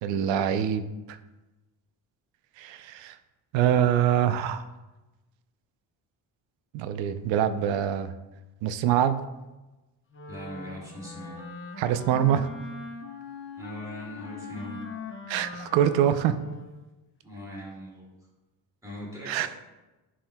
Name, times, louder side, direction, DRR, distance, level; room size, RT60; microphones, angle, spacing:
voice 1, 0.0-1.2 2.6-3.2 3.5-4.6 6.7-8.1 8.6-9.2 11.8-12.5 15.3-16.3 19.3-19.5, right 10 dB, 90° right, 11 dB, 0.6 m, -24 dB
Wind instrument woodwind instrument, 10.1-16.8, left 4 dB, 30° left, 1.0 m, -41 dB
voice 2, 10.3-11.4 13.6-14.8 17.2-18.1 18.8-19.5, equal, 10° right, -5 dB, 2.2 m, -40 dB
11.0 x 4.6 x 2.2 m, 1.1 s
cardioid pair, 140°, 43 cm